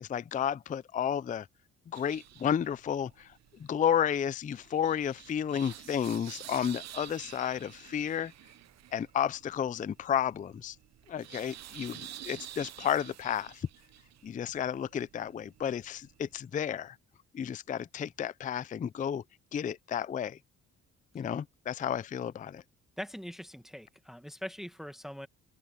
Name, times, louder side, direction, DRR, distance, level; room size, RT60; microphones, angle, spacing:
voice 1, 0.0-1.5 1.9-3.3 3.6-8.3 8.9-10.8 11.1-13.7 14.2-17.0 17.3-19.2 19.5-20.4 21.1-22.6, left 9 dB, 25° left, 0.4 m, -32 dB
sound 1, 1.9-16.5, right 12 dB, 60° right, 0.7 m, -50 dB
voice 2, 23.0-25.3, equal, ahead, 1.4 m, -42 dB
open air
cardioid pair, 90°, 30 cm